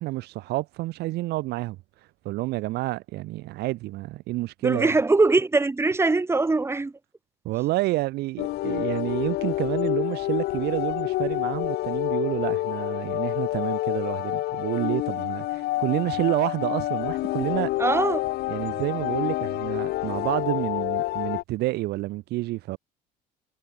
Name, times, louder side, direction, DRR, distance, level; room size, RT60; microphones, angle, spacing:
voice 1, 0.0-1.8 2.2-4.9 7.4-17.7 18.5-22.8, right 18 dB, 65° right, 0.9 m, -29 dB
voice 2, 4.6-6.9 17.8-18.2, right 3 dB, 15° right, 1.6 m, -22 dB
sound 1, 8.4-21.4, left 17 dB, 65° left, 1.1 m, -28 dB
supercardioid pair, 90°, 18 cm